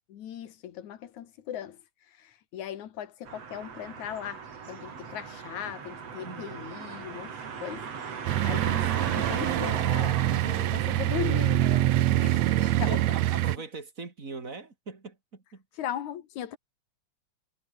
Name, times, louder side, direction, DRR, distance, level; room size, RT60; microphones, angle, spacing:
voice 1, 0.1-1.8 2.1-7.9 8.2-13.0 15.8-16.6, left 10 dB, 70° left, 3.0 m, -38 dB
sound 1, 3.3-11.3, right 6 dB, 55° right, 4.0 m, -37 dB
voice 2, 6.2-6.7 12.9-15.6, right 4 dB, 25° right, 3.0 m, -41 dB
sound 2, 8.3-13.6, right 15 dB, 75° right, 2.0 m, -25 dB
omnidirectional pair, 3.5 m